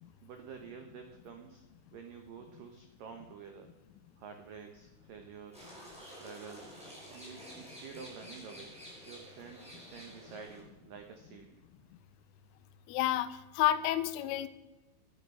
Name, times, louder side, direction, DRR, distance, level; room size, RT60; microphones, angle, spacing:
voice 1, 0.2-1.6 1.9-3.7 4.2-5.7 6.0-6.7 7.1-8.8 9.1-11.6, right 6 dB, 85° right, 5 dB, 1.9 m, -49 dB
sound 1, 5.5-10.6, equal, ahead, 4.8 m, -50 dB
voice 2, 12.9-14.5, left 13 dB, 85° left, 13 dB, 3.2 m, -30 dB
16.5 x 11.5 x 5.6 m, 1.1 s
omnidirectional pair, 5.7 m